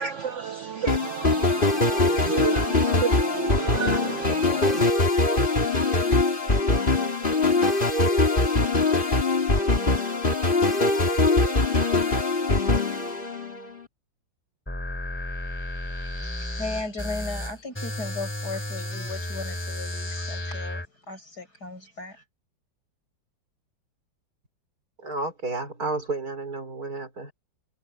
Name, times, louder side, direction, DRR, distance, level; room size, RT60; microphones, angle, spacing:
voice 1, 0.0-4.9, right 8 dB, 80° right, 0.6 m, -31 dB
sound 1, 0.9-13.8, left 3 dB, 25° left, 3.1 m, -22 dB
sound 2, 14.7-20.9, left 1 dB, 5° left, 2.4 m, -33 dB
voice 2, 15.9-22.2, left 3 dB, 55° left, 7.1 m, -37 dB
voice 3, 25.0-27.3, right 3 dB, 50° right, 5.3 m, -31 dB
omnidirectional pair, 2.0 m